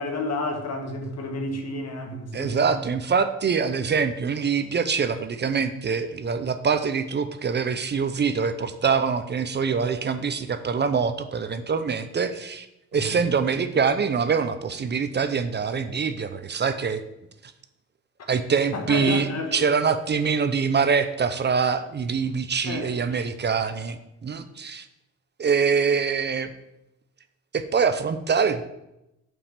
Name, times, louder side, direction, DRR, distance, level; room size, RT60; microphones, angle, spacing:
voice 1, 0.0-2.7 18.7-19.6 22.6-22.9 23.2-23.3, left 2 dB, 55° left, 4 dB, 1.6 m, -31 dB
voice 2, 2.3-12.7 12.9-17.0 18.3-24.9 25.4-26.5 27.5-28.6, right 5 dB, 35° right, 10 dB, 0.6 m, -24 dB
5.6 x 5.4 x 6.6 m, 0.88 s
cardioid pair, 90°, 30 cm